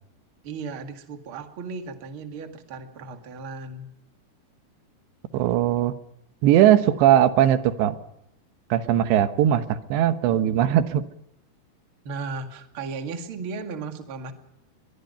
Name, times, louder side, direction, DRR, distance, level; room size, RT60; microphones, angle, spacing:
voice 1, 0.4-3.9 12.0-14.3, right 4 dB, 40° right, 5 dB, 2.1 m, -35 dB
voice 2, 5.3-5.9 6.4-8.0 8.7-11.1, right 11 dB, 90° right, 10 dB, 3.4 m, -19 dB
23.0 x 22.5 x 5.6 m, 0.79 s
omnidirectional pair, 4.9 m